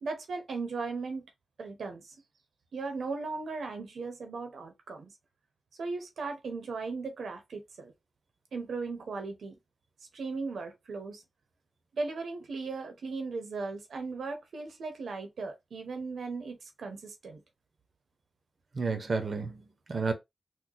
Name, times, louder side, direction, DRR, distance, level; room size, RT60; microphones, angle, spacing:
voice 1, 0.0-1.3 1.6-2.1 2.7-5.1 5.8-7.9 8.5-9.6 10.1-11.2 11.9-17.4, right 4 dB, 85° right, 0.8 m, -37 dB
voice 2, 18.7-20.1, right 4 dB, 55° right, 0.7 m, -31 dB
3.9 x 2.2 x 2.8 m
cardioid pair, 70°, 0 cm